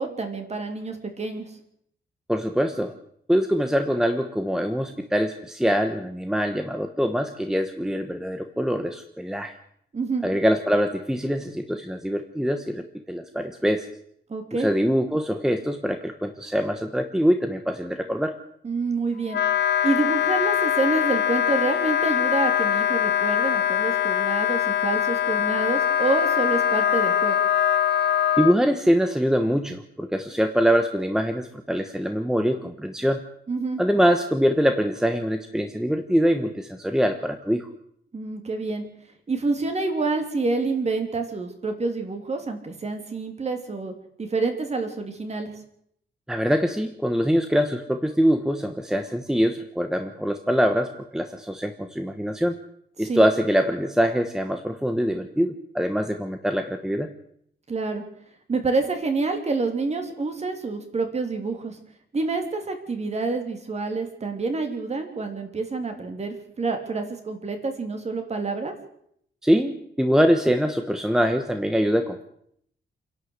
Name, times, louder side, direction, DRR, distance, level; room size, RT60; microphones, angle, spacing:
voice 1, 0.0-1.5 9.9-10.2 14.3-14.7 18.6-19.4 19.8-27.3 33.5-33.8 38.1-38.9 39.3-43.9 44.2-45.5 53.0-53.2 57.7-58.0 58.5-61.8 62.1-68.7, right 3 dB, 30° right, 5 dB, 3.1 m, -27 dB
voice 2, 2.3-2.9 3.3-9.5 10.2-13.9 14.5-18.3 28.4-33.2 33.8-37.7 46.3-52.6 53.0-57.1 69.4-72.2, equal, 5° right, 6 dB, 1.1 m, -23 dB
Wind instrument woodwind instrument, 19.3-28.6, left 10 dB, 55° left, 1.0 m, -22 dB
28.5 x 11.5 x 8.1 m, 0.69 s
wide cardioid pair, 170°, 20 cm